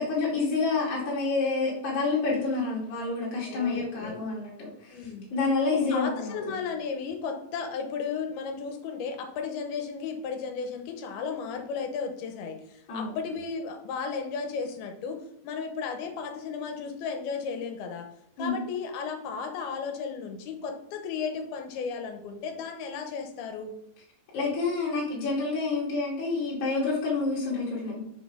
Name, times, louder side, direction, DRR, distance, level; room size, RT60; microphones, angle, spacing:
voice 1, 0.0-6.6 12.9-13.1 18.4-18.6 24.3-28.0, left 3 dB, 60° left, -6 dB, 2.5 m, -28 dB
voice 2, 3.5-4.2 4.9-5.3 5.7-18.1 18.4-23.7, left 5 dB, 85° left, 5 dB, 2.7 m, -34 dB
5.9 x 4.1 x 4.9 m, 0.77 s
omnidirectional pair, 4.4 m